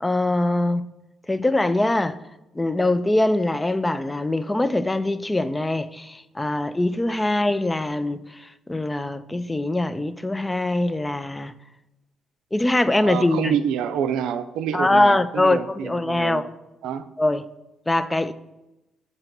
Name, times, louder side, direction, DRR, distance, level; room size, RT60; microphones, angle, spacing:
voice 1, 0.0-0.9 1.3-2.2 2.5-8.2 8.7-11.5 12.5-13.6 14.7-16.4 17.2-17.4 17.9-18.3, left 2 dB, 15° left, 0.4 m, -22 dB
voice 2, 13.0-16.4 16.8-17.0, right 8 dB, 90° right, 0.4 m, -27 dB
7.6 x 3.0 x 5.8 m
cardioid pair, 90°, 0 cm